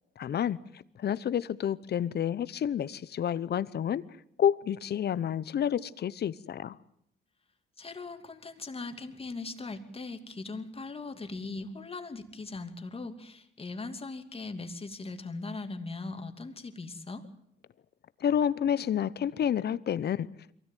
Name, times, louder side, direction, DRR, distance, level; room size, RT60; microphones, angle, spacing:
voice 1, 0.2-4.0 4.4-6.8 18.2-20.3, left 9 dB, 55° left, 0.9 m, -29 dB
voice 2, 7.8-17.2, left 3 dB, 30° left, 2.6 m, -40 dB
23.0 x 17.0 x 9.2 m
cardioid pair, 90°, 20 cm